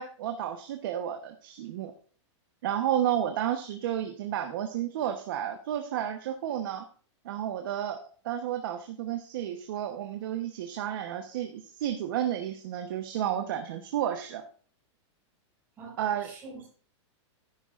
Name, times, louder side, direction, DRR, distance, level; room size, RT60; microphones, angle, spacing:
voice 1, 0.0-1.9 2.6-6.8 7.2-8.0 8.2-14.4 16.0-16.3, right 10 dB, 45° right, 6 dB, 1.0 m, -31 dB
voice 2, 15.8-16.7, right 3 dB, 15° right, -4 dB, 5.4 m, -46 dB
13.5 x 11.0 x 2.5 m, 0.42 s
supercardioid pair, 180°, 16 cm